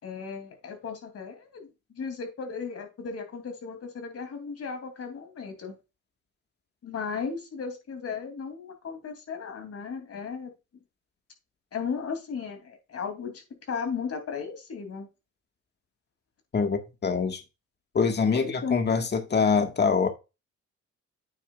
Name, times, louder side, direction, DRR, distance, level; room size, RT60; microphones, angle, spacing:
voice 1, 0.0-5.7 6.8-10.5 11.7-15.1 18.3-18.8, left 5 dB, 55° left, 3.0 m, -35 dB
voice 2, 16.5-17.4 17.9-20.1, left 5 dB, 35° left, 1.7 m, -24 dB
9.1 x 7.1 x 2.4 m
cardioid pair, 90°, 30 cm